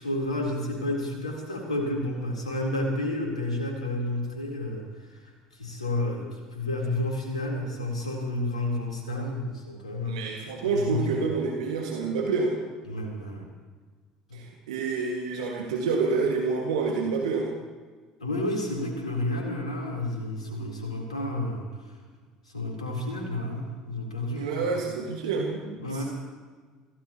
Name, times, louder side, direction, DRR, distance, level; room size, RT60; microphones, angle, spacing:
voice 1, 0.0-10.2 10.6-11.3 12.9-13.4 14.3-14.4 18.2-21.9 22.5-24.6 25.8-26.0, left 1 dB, 85° left, 0 dB, 3.6 m, -31 dB
voice 2, 10.1-12.5 14.3-17.5 24.4-26.0, right 4 dB, 70° right, 0 dB, 1.9 m, -28 dB
27.0 x 16.0 x 3.0 m, 1.5 s
figure-of-eight pair, 65°, 4 cm